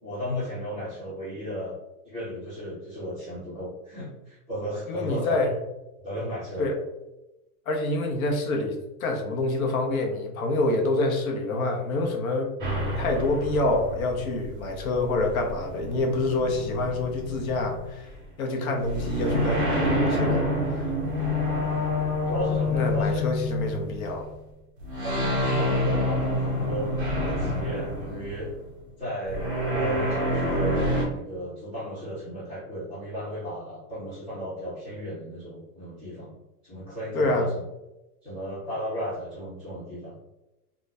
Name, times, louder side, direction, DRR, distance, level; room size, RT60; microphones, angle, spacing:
voice 1, 0.0-1.7 2.0-5.5 6.0-6.7 21.2-21.4 22.2-23.2 25.0-28.5 29.0-36.4 36.6-37.5 38.2-40.2, equal, 5° right, -22 dB, 0.4 m, -34 dB
voice 2, 4.9-5.5 6.6-6.8 7.7-12.5 13.0-18.1 18.4-20.5 20.8-20.9 22.7-24.3 37.1-37.5, left 2 dB, 65° left, 2 dB, 0.8 m, -27 dB
sound 1, 12.6-18.2 18.8-24.3 24.8-28.7 29.3-31.0, left 1 dB, 35° right, 0.9 m, -28 dB
2.6 x 2.2 x 3.2 m, 0.97 s
supercardioid pair, 175°, 46 cm